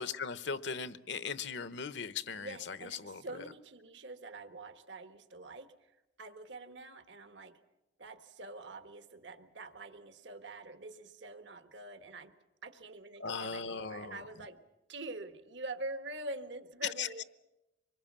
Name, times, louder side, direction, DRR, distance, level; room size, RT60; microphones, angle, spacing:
voice 1, 0.0-3.2 13.2-14.2 17.0-17.1, left 5 dB, 70° left, 14 dB, 0.9 m, -38 dB
voice 2, 2.4-5.9 6.2-7.6 8.0-12.3 12.6-14.6 14.9-17.2, right 2 dB, 70° right, 9 dB, 1.4 m, -45 dB
25.0 x 21.5 x 7.5 m, 0.96 s
head